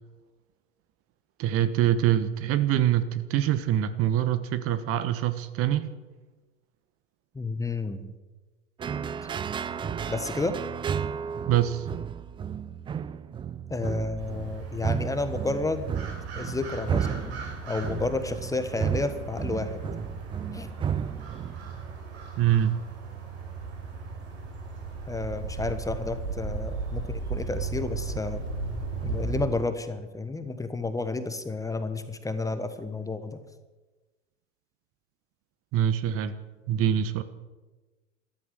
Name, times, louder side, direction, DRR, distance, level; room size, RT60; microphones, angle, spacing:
voice 1, 1.4-5.9 11.5-11.8 22.4-22.8 35.7-36.3 36.7-37.2, right 11 dB, 40° right, 12 dB, 1.2 m, -24 dB
voice 2, 7.3-8.1 10.1-10.5 13.7-15.9 16.4-17.4 17.7-19.8 20.5-20.7 25.1-28.4 29.0-33.4, left 3 dB, 10° left, 10 dB, 1.2 m, -31 dB
sound 1, 8.8-21.9, right 7 dB, 15° right, 0.4 m, -33 dB
sound 2, 14.2-29.5, right 4 dB, 60° right, 5.3 m, -36 dB
13.5 x 13.0 x 7.8 m, 1.2 s
figure-of-eight pair, 90°, 36 cm